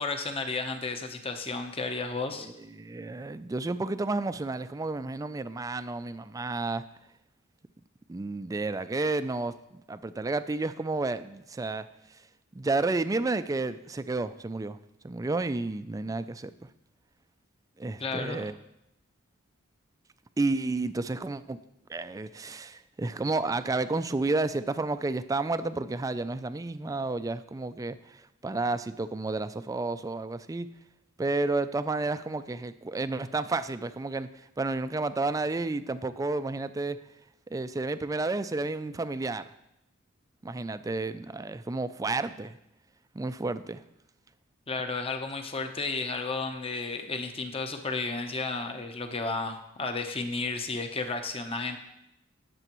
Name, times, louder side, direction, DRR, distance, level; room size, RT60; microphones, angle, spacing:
voice 1, 0.0-2.5 18.0-18.4 44.7-51.8, left 3 dB, 30° left, 6 dB, 0.8 m, -33 dB
voice 2, 2.4-6.8 8.1-11.9 12.5-14.8 15.0-16.5 17.8-18.5 20.4-21.6 21.9-30.7 31.2-34.3 34.6-37.0 37.5-39.5 40.4-42.5 43.1-43.8, right 3 dB, 15° right, 12 dB, 0.3 m, -31 dB
19.0 x 6.9 x 3.0 m, 0.86 s
head